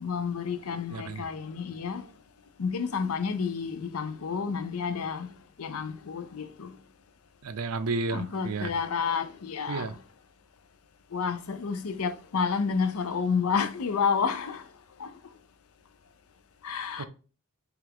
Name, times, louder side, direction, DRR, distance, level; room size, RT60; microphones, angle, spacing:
voice 1, 0.0-2.0 2.6-5.3 5.6-6.7 8.1-9.9 11.1-14.6 15.0-15.1 16.6-17.1, left 6 dB, 80° left, 0.6 m, -30 dB
voice 2, 0.9-1.3 7.4-8.7 9.7-9.9 17.0-17.1, right 3 dB, 85° right, 0.5 m, -32 dB
5.8 x 2.5 x 3.5 m
head